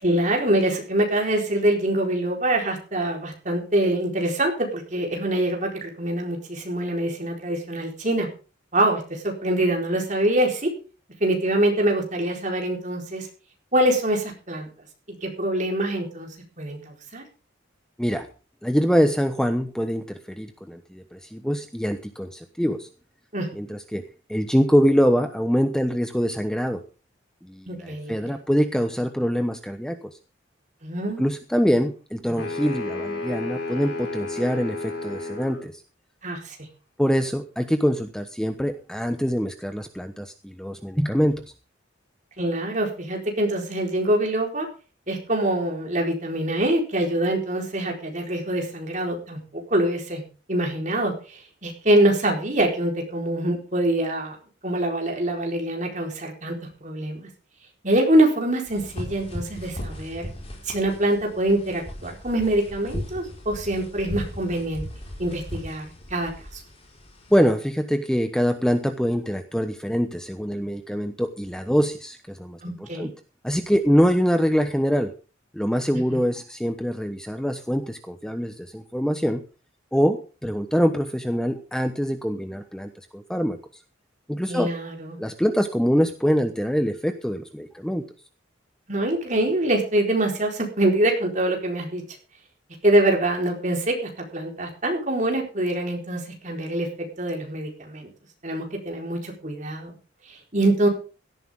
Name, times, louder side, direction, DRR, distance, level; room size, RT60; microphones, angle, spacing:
voice 1, 0.0-8.3 8.7-10.7 11.2-13.3 13.7-14.7 15.2-16.3 16.6-17.2 23.3-23.5 27.7-28.3 30.8-31.3 36.2-36.6 42.4-44.7 45.1-50.2 50.5-54.4 54.6-56.5 56.8-57.3 57.8-60.3 60.7-64.8 65.2-66.6 72.6-73.1 76.1-76.2 84.5-85.2 88.9-92.0 92.8-98.1 98.4-99.9 100.3-100.9, right 1 dB, 40° right, 1 dB, 4.3 m, -24 dB
voice 2, 18.6-22.9 23.5-24.0 24.3-26.8 27.5-30.1 31.2-35.8 37.0-41.4 67.3-73.1 73.4-75.1 75.5-79.4 79.9-83.6 84.3-84.7 85.2-88.0, equal, 5° left, 7 dB, 1.0 m, -24 dB
sound 1, 32.4-35.7, left 3 dB, 60° left, 7.2 m, -32 dB
sound 2, 58.7-67.4, left 1 dB, 30° left, 4.9 m, -37 dB
17.0 x 13.5 x 3.7 m, 0.35 s
head